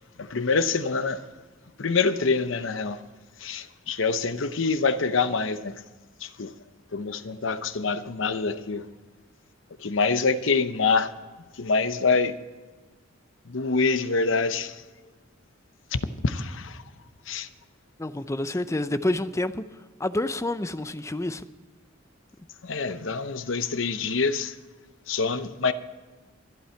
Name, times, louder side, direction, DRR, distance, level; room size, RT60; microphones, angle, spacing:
voice 1, 0.2-1.2 1.8-3.0 3.4-5.8 6.2-6.5 6.9-8.8 9.8-11.1 11.5-12.4 13.4-14.8 15.9-16.8 17.3-17.5 22.6-24.6 25.1-25.7, left 4 dB, 70° left, 0.8 m, -26 dB
voice 2, 18.0-19.6 20.0-21.4, left 1 dB, 15° left, 0.6 m, -28 dB
24.5 x 8.6 x 4.5 m
head